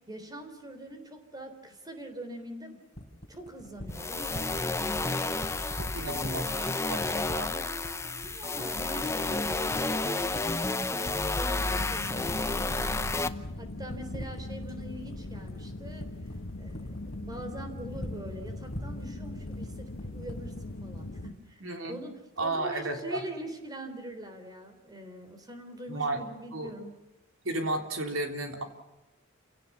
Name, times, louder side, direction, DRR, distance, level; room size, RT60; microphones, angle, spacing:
voice 1, 0.1-2.8 3.3-5.5 6.0-6.2 7.1-13.3 13.6-16.1 16.6-21.6 21.9-27.0, right 1 dB, 20° right, 6 dB, 3.6 m, -44 dB
sound 1, 2.9-20.7, equal, 30° left, 4.3 m, -41 dB
sound 2, 3.9-13.3, left 3 dB, 15° left, 0.8 m, -31 dB
voice 2, 5.8-7.5 21.6-22.0 22.4-23.2 25.9-26.2 26.5-26.7 27.4-28.6, right 2 dB, 70° right, 5 dB, 3.6 m, -33 dB
sound 3, 11.6-21.3, left 2 dB, 70° left, 1.2 m, -41 dB
28.5 x 17.0 x 7.2 m, 1.1 s
head